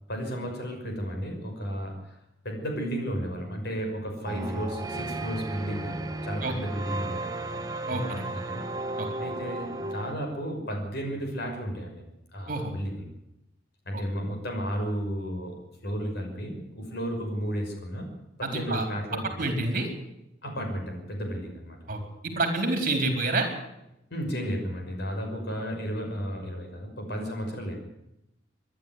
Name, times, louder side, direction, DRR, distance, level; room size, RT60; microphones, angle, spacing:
voice 1, 0.1-2.2 2.4-7.6 7.9-8.6 9.2-12.0 12.3-13.0 13.9-15.6 15.8-18.1 18.4-19.6 20.4-21.8 24.1-27.8, equal, 60° left, 3 dB, 6.0 m, -33 dB
sound 1, 4.3-10.2, right 2 dB, 20° right, 1.4 m, -34 dB
voice 2, 7.9-8.3 9.0-9.1 12.5-12.7 13.9-14.0 18.4-18.9 19.4-19.9 21.9-23.5, right 2 dB, 45° right, 5 dB, 4.2 m, -28 dB
24.0 x 11.5 x 9.6 m, 0.87 s
head